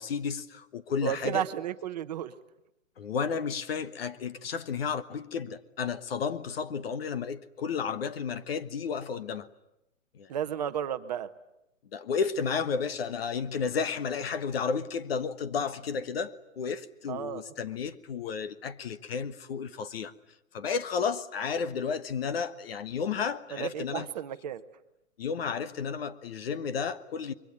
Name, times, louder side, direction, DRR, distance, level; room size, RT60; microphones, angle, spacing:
voice 1, 0.0-1.4 3.0-9.5 10.1-10.3 11.9-20.1 20.5-24.1 25.2-27.3, left 6 dB, 50° left, 1.4 m, -32 dB
voice 2, 1.0-2.3 10.3-11.3 17.1-17.4 23.5-24.6, right 10 dB, 30° right, 1.0 m, -33 dB
26.0 x 23.0 x 9.6 m
hypercardioid pair, 165°, 39 cm